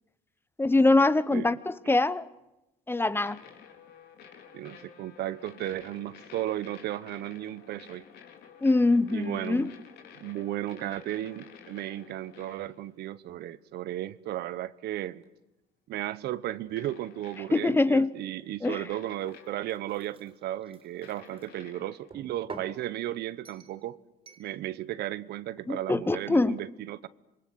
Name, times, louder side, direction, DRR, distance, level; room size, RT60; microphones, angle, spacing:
voice 1, 0.6-2.2 2.9-3.4 8.6-9.7 17.5-18.1 18.6-18.8 25.7-26.6, left 2 dB, 15° left, 1.1 m, -23 dB
sound 1, 3.2-12.9 15.2-15.3 16.8-17.8 18.6-19.9 21.0-22.1, left 7 dB, 70° left, 4.0 m, -52 dB
voice 2, 4.5-8.0 9.1-9.7 10.2-15.2 15.9-24.0 24.4-27.1, right 13 dB, 75° right, 1.1 m, -35 dB
sound 2, 19.2-21.5 22.1-22.8 23.5-23.8 24.3-24.5, right 4 dB, 30° right, 4.0 m, -47 dB
27.0 x 23.0 x 8.1 m
cardioid pair, 110°, 17 cm